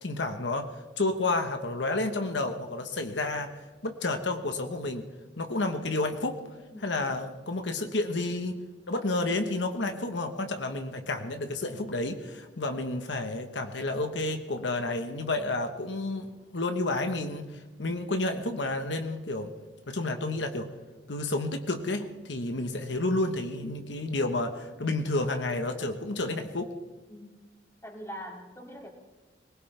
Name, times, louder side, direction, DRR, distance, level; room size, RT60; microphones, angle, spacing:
voice 1, 0.0-5.1 5.4-6.4 6.8-8.6 8.9-19.5 19.9-20.7 21.1-26.7, left 2 dB, 85° left, 6 dB, 1.2 m, -30 dB
voice 2, 27.8-28.9, equal, 15° left, 0 dB, 2.6 m, -42 dB
21.5 x 19.5 x 3.4 m, 1.2 s
head